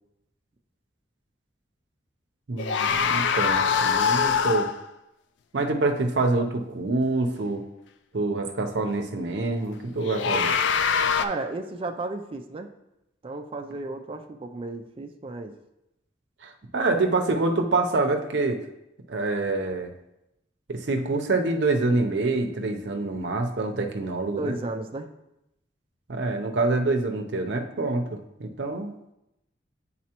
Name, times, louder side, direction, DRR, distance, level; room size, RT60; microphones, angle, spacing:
voice 1, 2.5-4.7 5.5-7.6 8.1-10.6 16.4-18.6 19.1-19.9 20.7-24.5 26.1-28.9, right 3 dB, 70° right, 5 dB, 0.6 m, -26 dB
sound 1, 2.6-4.8 10.0-11.3, left 6 dB, 80° left, 0.4 m, -23 dB
voice 2, 11.2-12.7 13.2-15.5 24.4-25.1, right 2 dB, 30° right, 5 dB, 0.3 m, -33 dB
8.5 x 4.0 x 2.9 m, 0.88 s
head